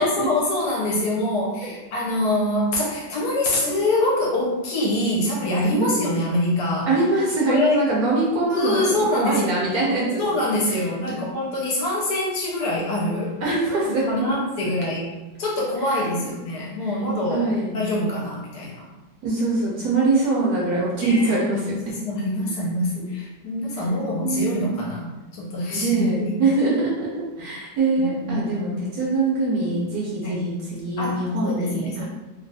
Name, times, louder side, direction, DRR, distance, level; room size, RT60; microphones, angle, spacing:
voice 1, 0.0-6.9 7.5-7.8 8.5-9.6 10.2-13.3 13.9-15.1 15.4-18.9 21.0-21.4 21.9-26.3 28.0-28.5 30.2-30.4 31.0-32.0, left 1 dB, 70° left, -3 dB, 1.1 m, -25 dB
voice 2, 6.9-8.8 9.2-10.2 10.7-10.8 11.1-11.2 13.4-14.3 14.6-14.7 15.8-15.9 16.8-17.0 17.3-17.8 19.2-21.9 24.2-24.8 25.7-32.0, right 2 dB, 70° right, -4 dB, 1.0 m, -23 dB
3.0 x 2.2 x 2.6 m, 1.1 s
omnidirectional pair, 2.0 m